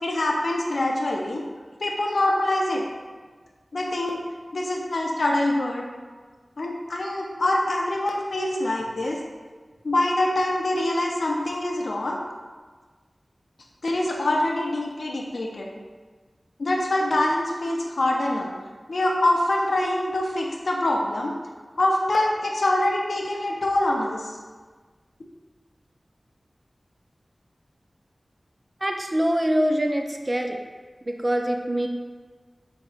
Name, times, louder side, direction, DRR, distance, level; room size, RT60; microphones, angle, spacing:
voice 1, 0.0-1.4 1.8-2.8 3.7-4.2 4.5-5.9 6.6-9.2 9.8-12.2 13.8-15.7 16.6-18.5 18.9-21.3 21.8-24.4, left 1 dB, 80° left, 0 dB, 0.5 m, -24 dB
voice 2, 28.8-30.6 31.1-31.9, equal, 40° right, 3 dB, 0.4 m, -24 dB
4.9 x 2.6 x 2.4 m, 1.4 s
wide cardioid pair, 45°, 0 cm